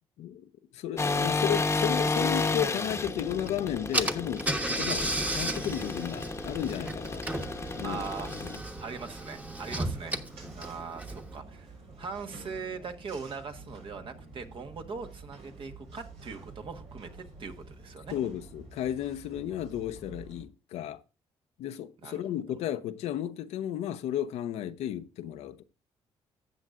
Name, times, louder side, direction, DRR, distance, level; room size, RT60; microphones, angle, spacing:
voice 1, 0.7-7.5 7.7-8.0 18.1-21.0 21.6-25.6, left 11 dB, 90° left, 0.7 m, -33 dB
sound 1, 1.0-8.6, left 3 dB, 25° left, 0.9 m, -31 dB
sound 2, 2.3-20.4, right 3 dB, 90° right, 4.6 m, -49 dB
Car / Engine, 3.5-3.6 3.9-11.4, right 1 dB, 15° right, 1.2 m, -34 dB
voice 2, 7.8-8.3 8.8-10.2 10.5-17.1 17.4-18.1 22.0-22.1, right 5 dB, 55° right, 1.4 m, -40 dB
13.0 x 8.1 x 2.5 m
cardioid pair, 85°, 11 cm